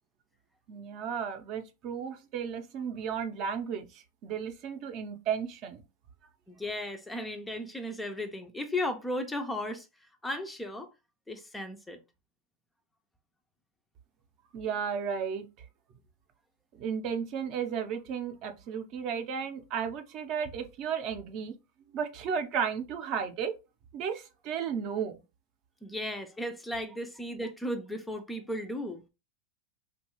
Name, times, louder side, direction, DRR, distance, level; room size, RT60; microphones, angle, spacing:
voice 1, 0.7-5.8 14.5-15.5 16.8-21.5 21.8-23.5 23.9-25.2, right 7 dB, 45° right, 0.5 m, -34 dB
voice 2, 6.5-9.9 10.2-10.9 11.3-12.0 25.8-29.0, left 1 dB, 5° left, 0.4 m, -35 dB
3.0 x 2.2 x 3.0 m
supercardioid pair, 135°, 0 cm